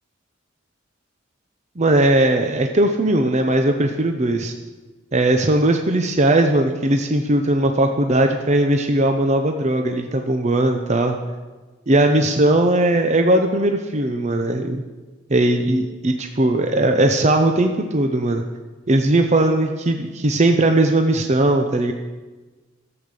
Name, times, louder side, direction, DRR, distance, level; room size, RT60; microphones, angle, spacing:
voice 1, 1.8-4.5 5.1-11.2 11.9-14.8 15.3-18.4 18.9-21.9, right 1 dB, 35° right, 5 dB, 0.7 m, -18 dB
13.0 x 7.9 x 6.7 m, 1.2 s
head